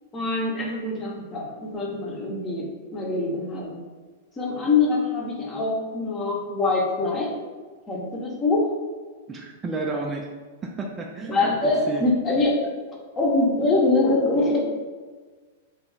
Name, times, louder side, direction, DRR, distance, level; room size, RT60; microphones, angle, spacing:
voice 1, 0.1-3.8 4.4-7.3 7.9-8.7 11.3-14.6, left 3 dB, 20° left, -2 dB, 0.8 m, -24 dB
voice 2, 9.3-10.3 10.6-11.4 11.6-12.0, right 3 dB, 20° right, 0 dB, 0.4 m, -31 dB
3.0 x 2.9 x 3.8 m, 1.4 s
figure-of-eight pair, 100°, 0 cm